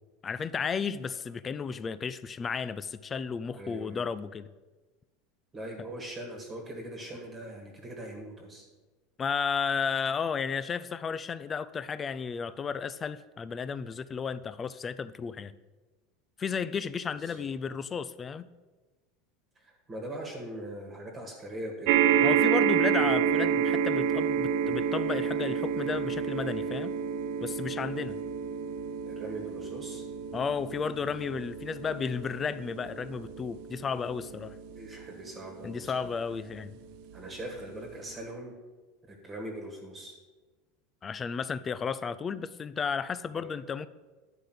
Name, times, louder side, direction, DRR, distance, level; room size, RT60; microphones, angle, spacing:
voice 1, 0.2-4.5 9.2-15.5 16.4-18.5 22.2-26.9 27.4-28.2 30.3-34.6 35.6-36.8 41.0-43.9, left 6 dB, 20° left, 15 dB, 0.3 m, -33 dB
voice 2, 3.5-4.0 5.5-8.6 17.1-17.4 19.5-21.9 29.1-30.0 34.7-36.1 37.1-38.5 39.1-40.1 43.3-43.4, right 1 dB, 15° right, 1 dB, 1.7 m, -41 dB
sound 1, 21.9-36.4 37.2-37.3 37.5-37.6, right 8 dB, 55° right, 0.6 m, -29 dB
11.0 x 5.0 x 7.8 m, 1.2 s
supercardioid pair, 165°, 0 cm